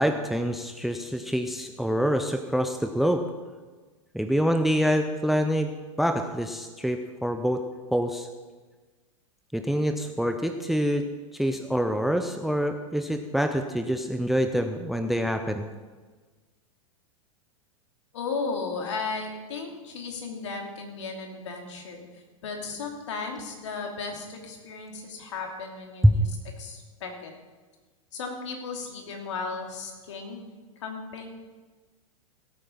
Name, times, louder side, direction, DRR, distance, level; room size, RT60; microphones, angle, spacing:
voice 1, 0.0-3.2 4.1-7.6 7.9-8.3 9.5-11.0 11.3-15.6 26.0-26.2, equal, ahead, 7 dB, 0.7 m, -26 dB
voice 2, 18.1-26.2 26.6-27.3 28.1-30.4 30.8-31.3, left 4 dB, 55° left, 2 dB, 3.0 m, -35 dB
17.5 x 8.7 x 5.7 m, 1.3 s
figure-of-eight pair, 100°, 18 cm